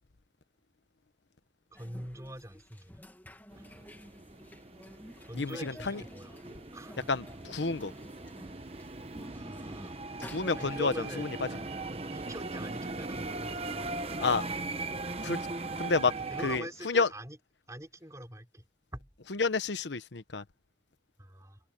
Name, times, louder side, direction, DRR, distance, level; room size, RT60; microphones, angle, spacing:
sound 1, 1.7-10.9, equal, 10° left, 2.4 m, -52 dB
voice 1, 1.7-3.0 3.6-3.7 5.2-6.3 6.7-7.1 9.3-10.0 10.5-11.6 12.1-14.0 16.3-17.4 17.7-18.6 18.9-19.1 21.2-21.6, right 1 dB, 15° right, 4.7 m, -44 dB
sound 2, 3.5-16.6, right 3 dB, 35° right, 1.1 m, -39 dB
voice 2, 5.3-6.0 7.1-7.9 10.3-11.3 14.2-14.4 15.2-15.4 15.8-16.1 16.4-17.1 19.3-20.4, left 4 dB, 80° left, 1.0 m, -29 dB
head